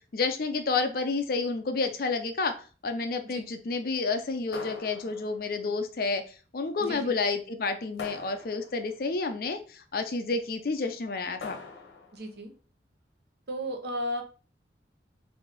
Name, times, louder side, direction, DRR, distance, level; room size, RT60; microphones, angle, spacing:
voice 1, 0.1-2.6 2.8-6.2 6.5-11.6, left 4 dB, 55° left, 7 dB, 0.5 m, -30 dB
sound 1, 4.5-5.6 8.0-9.0 11.4-12.3, left 4 dB, 80° left, 0.9 m, -43 dB
voice 2, 12.1-12.5 13.5-14.2, equal, 65° right, 3 dB, 0.8 m, -34 dB
3.4 x 2.6 x 4.0 m, 0.37 s
head